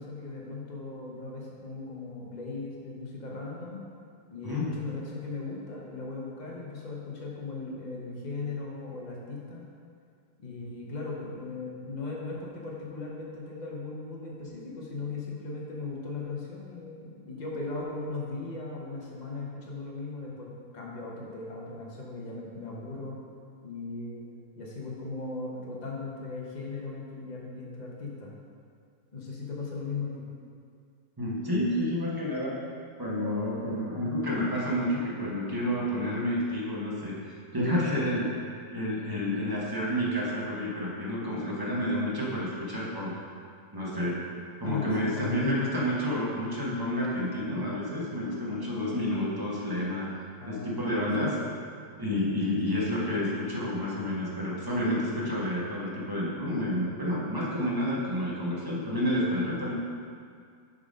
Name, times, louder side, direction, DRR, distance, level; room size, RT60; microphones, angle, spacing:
voice 1, 0.0-3.8 4.3-9.6 10.4-23.2 23.6-24.2 24.6-28.3 29.1-30.2 44.6-45.5 50.4-50.7 51.2-51.4 52.6-52.8, left 3 dB, 35° left, -3 dB, 0.7 m, -38 dB
voice 2, 31.2-32.5 33.0-38.3 38.7-43.1 43.7-44.2 44.6-50.1 50.4-51.4 52.0-59.7, left 1 dB, 15° right, -6 dB, 0.8 m, -29 dB
7.1 x 3.9 x 5.3 m, 2.3 s
omnidirectional pair, 2.1 m